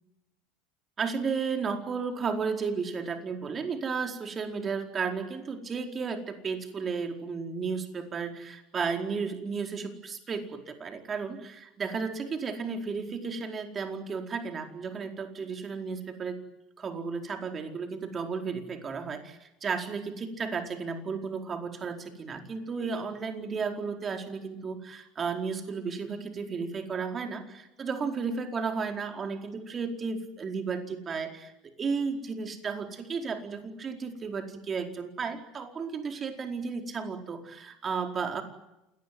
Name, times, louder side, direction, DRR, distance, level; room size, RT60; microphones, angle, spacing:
voice 1, 1.0-16.4 16.8-31.5 31.8-38.4, right 5 dB, 30° right, 5 dB, 4.6 m, -33 dB
28.0 x 19.0 x 9.6 m, 0.92 s
hypercardioid pair, 75°, 0 cm